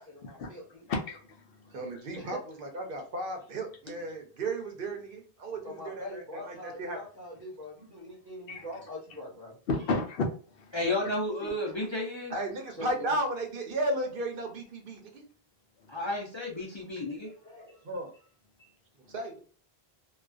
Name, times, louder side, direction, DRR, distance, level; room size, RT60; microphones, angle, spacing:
voice 1, 0.0-0.9 2.2-2.4 5.6-9.5 11.6-11.8 12.7-13.2 17.2-17.8, left 1 dB, 10° left, 1.0 m, -43 dB
voice 2, 0.9-2.0 8.5-8.6 9.7-10.8, left 3 dB, 70° left, 0.8 m, -33 dB
voice 3, 1.7-6.0 6.5-7.0 11.0-11.5 12.3-15.2 17.8-18.1 19.1-19.4, right 1 dB, 65° right, 0.8 m, -34 dB
voice 4, 10.7-12.3 15.9-17.3, left 1 dB, 35° left, 0.6 m, -32 dB
2.3 x 2.3 x 2.3 m
omnidirectional pair, 1.0 m